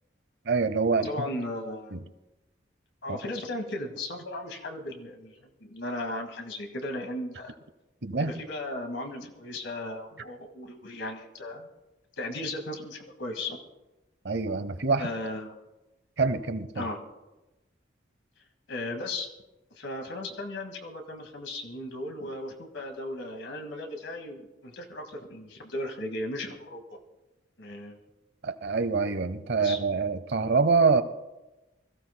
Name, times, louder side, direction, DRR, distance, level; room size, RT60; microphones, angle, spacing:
voice 1, 0.5-1.1 1.9-2.0 3.1-3.2 8.0-8.3 14.2-15.1 16.2-16.9 28.4-31.0, right 4 dB, 65° right, 11 dB, 0.8 m, -25 dB
voice 2, 1.0-2.0 3.0-7.6 8.2-11.7 12.2-13.6 15.0-15.5 16.7-17.0 18.7-19.3 19.8-27.0 27.6-28.0 29.6-29.8, left 1 dB, 85° left, 4 dB, 1.9 m, -36 dB
25.0 x 15.0 x 2.2 m, 1.0 s
head